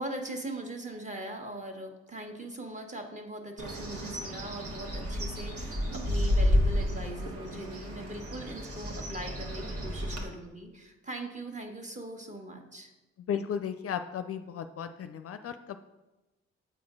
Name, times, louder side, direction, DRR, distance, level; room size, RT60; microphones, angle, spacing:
voice 1, 0.0-12.9, right 1 dB, 25° right, 2 dB, 1.4 m, -41 dB
Bird, 3.6-10.2, left 1 dB, 50° right, 1.4 m, -31 dB
voice 2, 13.2-15.8, left 8 dB, 50° left, 9 dB, 0.4 m, -35 dB
8.2 x 4.2 x 3.7 m, 1.1 s
supercardioid pair, 55°, 30 cm